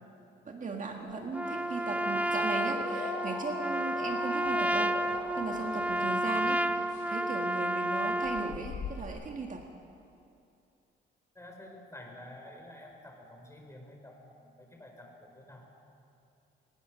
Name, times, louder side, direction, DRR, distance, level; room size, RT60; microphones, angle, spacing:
voice 1, 0.5-9.6, right 4 dB, 40° right, 2 dB, 1.9 m, -37 dB
Motor vehicle (road) / Siren, 0.8-6.7, left 4 dB, 55° left, 2.2 m, -43 dB
sound 1, 1.0-2.5 2.7-3.1 3.4-3.6 4.0-9.1, left 7 dB, 80° left, 2.0 m, -48 dB
Trumpet, 1.3-8.6, right 1 dB, 5° right, 0.7 m, -31 dB
voice 2, 11.3-15.6, left 1 dB, 15° left, 1 dB, 5.0 m, -50 dB
22.0 x 20.0 x 6.3 m, 2.6 s
cardioid pair, 90°, 20 cm